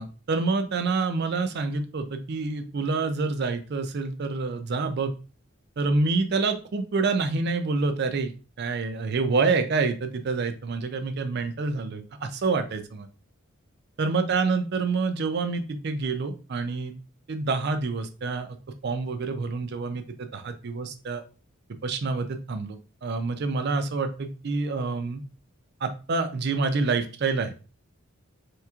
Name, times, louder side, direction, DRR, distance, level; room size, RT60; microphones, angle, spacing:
voice 1, 0.0-5.1 5.8-8.3 8.6-13.1 14.0-16.9 17.3-18.6 18.8-21.2 21.8-22.8 23.0-25.2 25.8-27.5, right 4 dB, 50° right, 9 dB, 0.4 m, -27 dB
3.3 x 3.0 x 2.3 m, 0.34 s
head